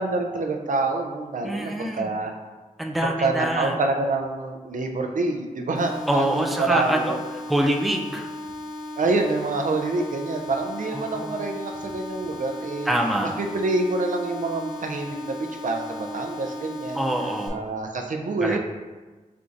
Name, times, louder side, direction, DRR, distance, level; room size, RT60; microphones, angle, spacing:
voice 1, 0.0-2.3 3.2-7.2 9.0-12.9 13.4-17.0 17.5-18.6, right 3 dB, 70° right, 3 dB, 0.5 m, -26 dB
voice 2, 1.4-2.1 2.8-3.8 6.1-7.2 7.5-8.3 10.9-11.4 12.9-13.3 16.9-17.6 18.4-18.6, right 1 dB, ahead, 2 dB, 0.4 m, -25 dB
sound 1, 5.7-17.5, left 1 dB, 30° left, 0.7 m, -36 dB
4.4 x 3.8 x 2.5 m, 1.2 s
wide cardioid pair, 95°, 14 cm